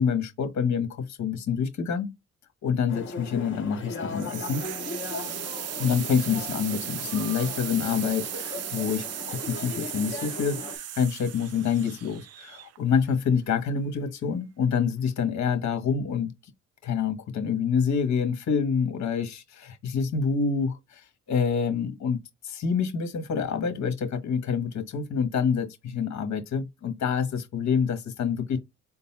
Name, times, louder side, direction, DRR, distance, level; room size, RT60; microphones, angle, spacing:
voice 1, 0.0-2.1 2.6-4.7 5.8-16.3 16.8-22.2 22.4-28.6, left 6 dB, 65° left, 1.4 m, -27 dB
sound 1, 2.9-10.8, left 3 dB, 40° left, 2.0 m, -38 dB
sound 2, 4.1-13.0, right 12 dB, 55° right, 0.5 m, -36 dB
4.0 x 2.0 x 4.1 m
cardioid pair, 90°, 30 cm